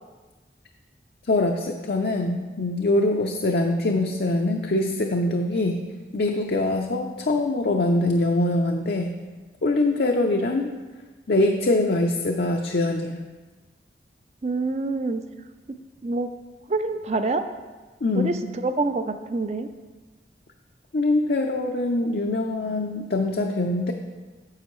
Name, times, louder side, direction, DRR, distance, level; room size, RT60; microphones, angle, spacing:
voice 1, 1.3-5.8 6.1-9.2 9.6-10.7 11.3-13.2 18.0-18.3 20.9-23.9, left 2 dB, 60° left, 2 dB, 0.5 m, -23 dB
voice 2, 14.4-15.2 16.0-16.3 16.7-17.4 18.1-18.4 18.6-19.7, right 3 dB, 35° right, 9 dB, 0.4 m, -26 dB
9.5 x 7.3 x 3.1 m, 1.3 s
head